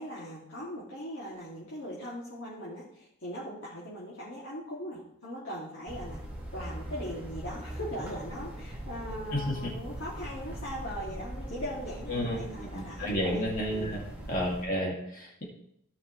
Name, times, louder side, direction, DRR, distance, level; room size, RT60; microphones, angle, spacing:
voice 1, 0.0-6.2 6.5-14.0, equal, 65° left, -8 dB, 2.6 m, -40 dB
sound 1, 5.9-14.6, right 1 dB, 5° right, 2.3 m, -41 dB
voice 2, 12.1-14.0 14.3-15.4, equal, 40° left, -4 dB, 2.4 m, -31 dB
16.5 x 5.8 x 3.2 m, 0.74 s
head